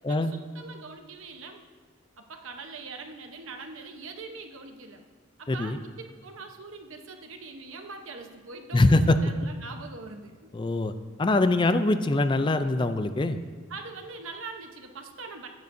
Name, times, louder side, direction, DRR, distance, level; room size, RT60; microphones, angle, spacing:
voice 1, 0.1-1.6 2.2-5.0 5.4-10.4 13.7-15.5, right 4 dB, 85° right, 4 dB, 1.0 m, -42 dB
voice 2, 5.5-5.8 8.7-9.2 10.5-10.9 11.2-13.4, left 2 dB, 25° left, 10 dB, 0.4 m, -23 dB
15.5 x 9.4 x 2.7 m, 1.5 s
head